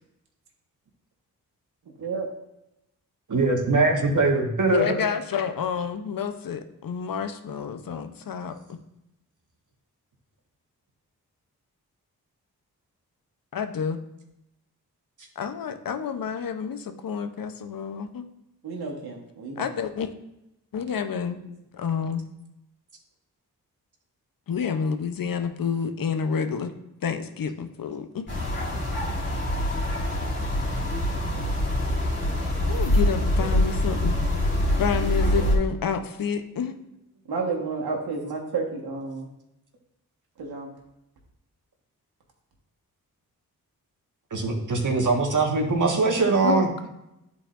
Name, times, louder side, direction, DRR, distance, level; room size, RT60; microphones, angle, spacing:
voice 1, 3.3-5.0 44.3-46.7, right 3 dB, 50° right, 2 dB, 1.5 m, -22 dB
voice 2, 4.7-8.8 13.5-14.0 15.4-18.3 19.6-20.1 20.7-21.4 21.7-22.2 24.5-26.7 27.0-28.3 32.7-34.1 34.8-36.8 46.4-46.7, left 6 dB, 60° left, 9 dB, 0.8 m, -29 dB
voice 3, 18.6-19.7 21.4-21.5 37.3-39.3 40.4-40.7, right 4 dB, 75° right, -1 dB, 1.4 m, -31 dB
sound 1, 28.3-35.6, left 1 dB, 30° left, 2.2 m, -25 dB
10.5 x 4.2 x 2.5 m, 0.88 s
cardioid pair, 50°, 38 cm